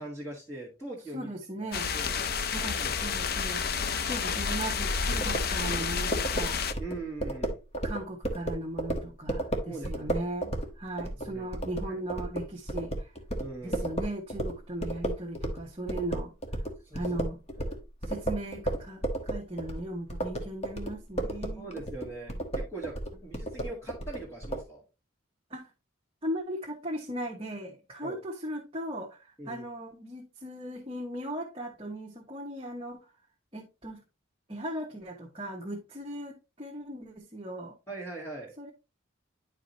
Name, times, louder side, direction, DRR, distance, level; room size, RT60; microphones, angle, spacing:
voice 1, 0.0-1.3 1.6-2.3 2.8-3.3 6.8-7.6 9.6-10.3 11.2-11.5 11.9-12.0 13.4-13.9 16.8-17.2 17.6-17.7 21.6-24.8 28.0-28.2 29.4-29.7 37.9-38.5, right 2 dB, 15° left, 1.8 m, -41 dB
voice 2, 1.1-2.0 2.5-3.6 4.0-6.6 7.8-13.1 13.6-16.6 16.9-17.4 18.0-21.7 25.5-25.7 26.2-33.1 33.5-34.0 34.5-37.8 38.6-38.7, right 1 dB, 25° right, 1.1 m, -38 dB
sound 1, 1.7-6.7, left 5 dB, 50° left, 0.6 m, -30 dB
sound 2, 5.1-15.6 15.9-24.6, right 1 dB, 30° left, 1.2 m, -33 dB
10.5 x 4.9 x 2.8 m
head